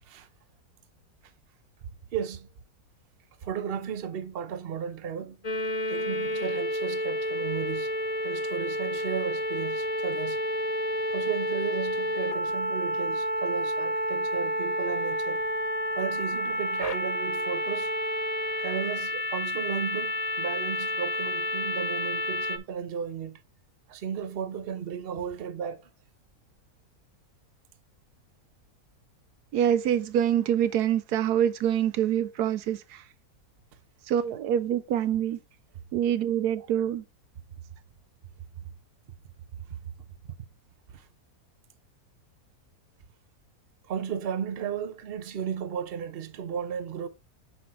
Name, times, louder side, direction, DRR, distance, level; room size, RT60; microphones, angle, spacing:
voice 1, 2.1-2.5 3.4-5.4 5.9-7.9 8.2-10.4 11.1-15.4 16.0-17.9 18.6-23.4 23.9-25.8 38.6-38.7 39.6-39.9 40.2-40.4 40.9-41.1 43.9-47.1, right 7 dB, 45° right, 0.9 m, -34 dB
sound 1, 5.4-22.6, equal, 40° left, 0.6 m, -30 dB
voice 2, 29.5-33.1 34.0-35.4 35.9-37.0, right 10 dB, 85° right, 1.2 m, -25 dB
7.8 x 5.1 x 3.1 m
omnidirectional pair, 1.6 m